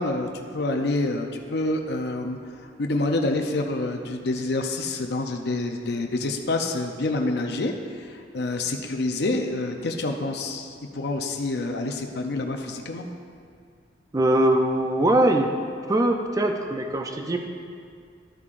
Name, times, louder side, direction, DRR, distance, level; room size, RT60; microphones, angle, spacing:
voice 1, 0.0-2.4 2.8-13.1, left 2 dB, 60° left, 3 dB, 0.6 m, -27 dB
voice 2, 14.1-15.5 15.9-17.4, right 1 dB, 20° right, 4 dB, 0.4 m, -21 dB
13.0 x 8.4 x 2.5 m, 2.2 s
head